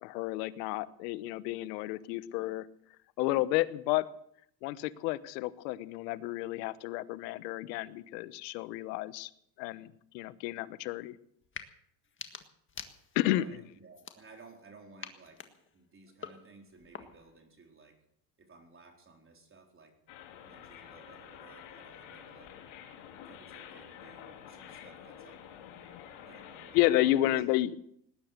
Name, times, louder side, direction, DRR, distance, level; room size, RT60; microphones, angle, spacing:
voice 1, 0.0-2.7 3.2-4.1 4.6-9.3 9.6-11.1 13.1-13.4 25.9-26.0 26.7-27.8, left 16 dB, 80° left, 16 dB, 1.1 m, -31 dB
sound 1, 11.4-11.7 12.0-13.4 13.9-14.6 15.0-17.4, left 6 dB, 25° left, 1.6 m, -47 dB
voice 2, 13.3-18.0 18.4-20.0 20.4-22.6 23.3-25.4 26.2-27.3, right 3 dB, 25° right, 3 dB, 4.2 m, -56 dB
sound 2, 20.1-27.2, left 9 dB, 60° left, 3.1 m, -49 dB
19.5 x 10.5 x 6.7 m, 0.70 s
supercardioid pair, 105°, 49 cm